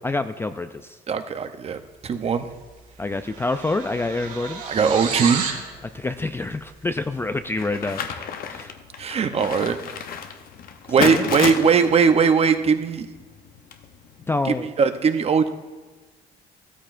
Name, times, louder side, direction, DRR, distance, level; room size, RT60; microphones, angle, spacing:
voice 1, 0.0-1.0 3.0-4.6 5.9-8.7 11.0-11.2 14.3-14.7, left 2 dB, 15° left, 9 dB, 0.3 m, -27 dB
voice 2, 1.1-2.5 4.7-5.4 9.0-9.8 10.9-13.1 14.4-15.5, right 6 dB, 35° right, 9 dB, 0.7 m, -20 dB
sound 1, 2.5-2.7 3.0-5.7, right 5 dB, 55° right, 2.3 m, -31 dB
sound 2, 7.6-14.3, left 7 dB, 60° left, 0.8 m, -32 dB
15.0 x 13.5 x 2.5 m, 1.3 s
cardioid pair, 110°, 17 cm